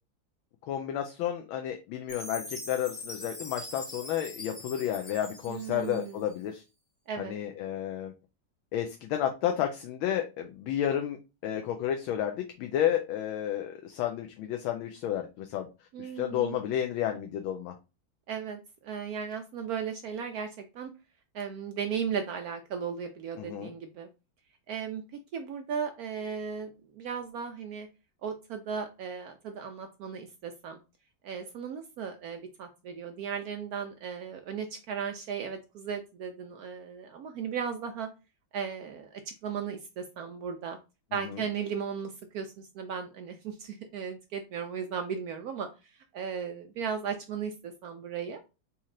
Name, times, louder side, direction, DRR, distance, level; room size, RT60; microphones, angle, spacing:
voice 1, 0.7-6.6 7.2-8.1 8.7-11.2 11.4-15.7 16.0-17.7 23.4-23.7 41.3-41.4, left 10 dB, 85° left, 4 dB, 1.4 m, -31 dB
Chime, 2.1-6.3, left 2 dB, 30° left, 1.5 m, -43 dB
voice 2, 5.5-6.2 7.1-7.4 15.9-16.6 18.3-20.5 20.7-20.9 21.3-24.1 24.7-25.0 25.3-27.9 28.2-30.8 31.2-38.1 38.5-40.8 41.1-45.7 46.1-48.4, right 7 dB, 85° right, 5 dB, 0.8 m, -36 dB
4.3 x 3.0 x 3.7 m, 0.29 s
omnidirectional pair, 2.2 m